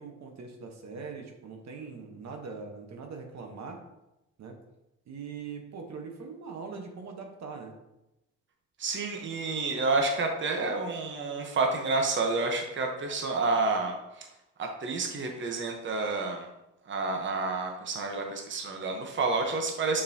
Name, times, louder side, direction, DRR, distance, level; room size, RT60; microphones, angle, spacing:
voice 1, 0.0-3.8 4.4-4.6 5.1-7.8, right 5 dB, 65° right, 3 dB, 1.1 m, -41 dB
voice 2, 8.8-14.3 14.6-16.5 16.9-20.0, right 3 dB, 40° right, 2 dB, 1.0 m, -29 dB
6.7 x 5.4 x 2.8 m, 0.92 s
cardioid pair, 90°, 30 cm